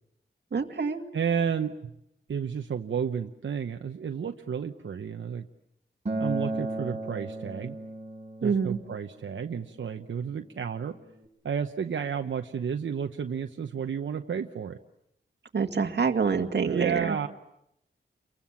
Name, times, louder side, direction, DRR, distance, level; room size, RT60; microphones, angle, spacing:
voice 1, 0.5-1.0 8.4-8.8 15.5-17.0, right 5 dB, 60° right, 4 dB, 2.2 m, -26 dB
voice 2, 1.1-1.9 2.3-5.5 6.2-7.8 8.4-11.0 11.4-14.8 16.6-17.3, right 7 dB, 90° right, 5 dB, 1.0 m, -31 dB
Acoustic guitar, 6.1-11.3, right 2 dB, 35° right, 5.4 m, -36 dB
30.0 x 23.5 x 7.3 m, 0.81 s
wide cardioid pair, 100°, 19 cm